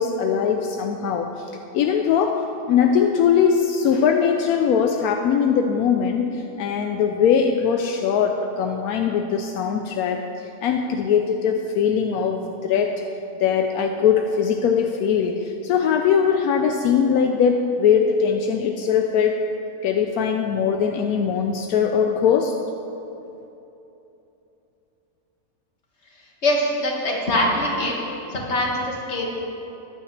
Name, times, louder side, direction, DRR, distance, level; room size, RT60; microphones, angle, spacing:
voice 1, 0.0-1.5 1.7-2.4 2.7-13.0 13.4-19.4 19.8-22.5, left 7 dB, 80° left, 4 dB, 1.1 m, -21 dB
voice 2, 26.4-27.9 28.3-29.3, left 1 dB, 50° left, -2 dB, 1.9 m, -23 dB
14.5 x 11.0 x 3.2 m, 3.0 s
omnidirectional pair, 1.5 m